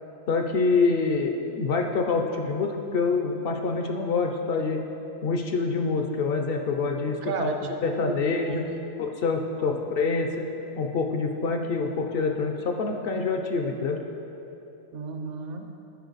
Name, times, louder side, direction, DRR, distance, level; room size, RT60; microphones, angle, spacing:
voice 1, 0.3-4.8 5.2-7.5 7.8-8.7 9.0-10.5 10.8-14.0, left 4 dB, 60° left, 4 dB, 0.6 m, -26 dB
voice 2, 7.2-8.9 9.6-9.8 14.9-15.7, right 4 dB, 60° right, 5 dB, 0.8 m, -34 dB
12.5 x 5.1 x 4.0 m, 3.0 s
omnidirectional pair, 1.6 m